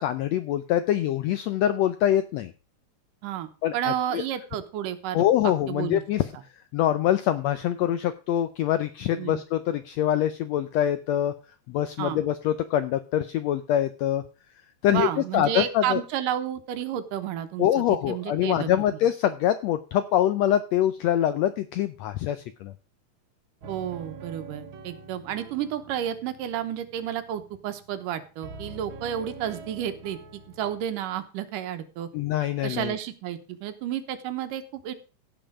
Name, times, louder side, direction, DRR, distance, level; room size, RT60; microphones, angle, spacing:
voice 1, 0.0-2.5 3.6-4.2 5.1-6.2 6.7-11.3 11.7-14.2 14.8-15.1 15.3-16.0 17.6-22.7 32.1-32.9, left 11 dB, 85° left, 11 dB, 1.5 m, -24 dB
voice 2, 3.2-6.0 9.2-9.4 12.0-12.2 14.9-18.7 23.7-32.1 32.6-34.9, right 10 dB, 85° right, 9 dB, 2.6 m, -31 dB
sound 1, 23.6-28.1 28.4-30.8, right 3 dB, 60° right, 1.3 m, -45 dB
16.0 x 5.6 x 5.0 m, 0.35 s
omnidirectional pair, 3.7 m